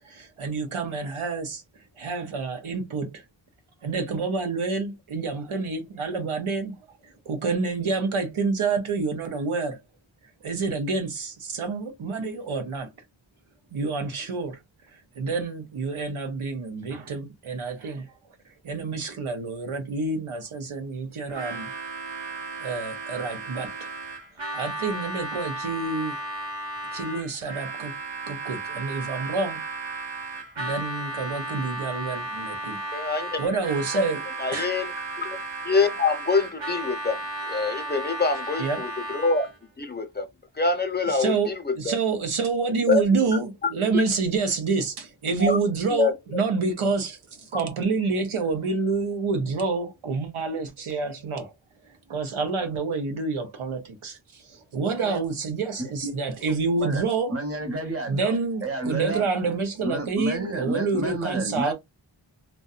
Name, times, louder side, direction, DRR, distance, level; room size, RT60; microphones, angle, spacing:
voice 1, 0.0-1.6 2.0-3.2 3.8-6.7 7.3-9.8 10.4-12.9 13.7-14.6 15.2-18.0 18.6-21.7 22.6-23.9 24.5-26.2 26.9-27.9 28.3-29.6 30.6-32.8 33.4-34.2 34.5-34.7 38.6-38.8 41.1-51.5 52.1-54.2 54.5-57.4 58.1-61.7, right 4 dB, 85° right, 0.7 m, -28 dB
Harmonica, 21.3-39.6, right 2 dB, 65° right, 1.1 m, -34 dB
voice 2, 32.9-33.4 33.9-34.0 34.4-34.9 35.2-35.4 35.6-37.2 37.5-39.5 39.8-40.3 40.5-42.0 42.8-43.0 43.6-43.7 45.4-45.6 45.9-46.4, left 4 dB, 20° left, 0.6 m, -25 dB
voice 3, 57.3-58.3 58.6-59.3 59.8-61.7, right 2 dB, 30° right, 0.9 m, -30 dB
2.6 x 2.2 x 2.3 m
wide cardioid pair, 40°, 48 cm